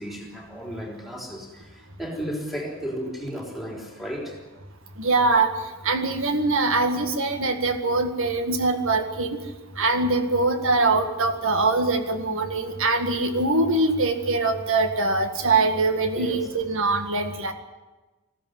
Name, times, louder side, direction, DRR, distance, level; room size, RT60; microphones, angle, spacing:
voice 1, 0.0-4.4 16.2-16.5, equal, ahead, -1 dB, 3.7 m, -34 dB
voice 2, 5.0-5.5 5.8-9.4 9.8-17.5, right 3 dB, 65° right, 7 dB, 1.9 m, -23 dB
20.0 x 16.0 x 9.5 m, 1.2 s
head